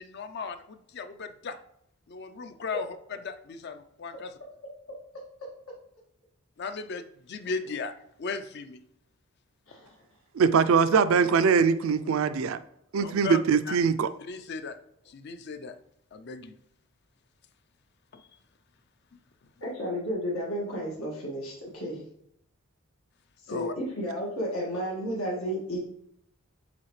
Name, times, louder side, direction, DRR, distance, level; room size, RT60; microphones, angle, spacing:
voice 1, 0.0-1.6 2.1-4.3 6.6-7.9 8.2-8.8 13.0-13.4 13.7-13.8 14.2-14.8 15.1-15.7 16.1-16.5 18.1-18.2 23.5-23.7, left 4 dB, 50° left, 10 dB, 0.5 m, -36 dB
voice 2, 10.4-12.6 12.9-14.1, right 6 dB, 75° right, 12 dB, 0.4 m, -22 dB
voice 3, 19.6-22.0 23.4-25.8, equal, 90° left, -4 dB, 1.8 m, -32 dB
7.4 x 4.1 x 3.1 m, 0.73 s
head